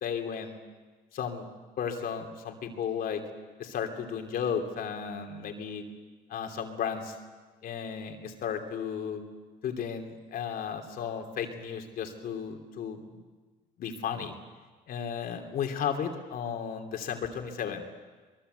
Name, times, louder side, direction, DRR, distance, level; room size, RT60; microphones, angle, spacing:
voice 1, 0.0-0.6 1.1-1.5 1.8-3.2 3.6-5.8 6.3-7.1 7.6-9.2 9.6-13.0 13.8-14.3 14.9-17.8, left 7 dB, 60° left, 4 dB, 3.0 m, -34 dB
24.0 x 22.0 x 8.2 m, 1.3 s
cardioid pair, 110°, 17 cm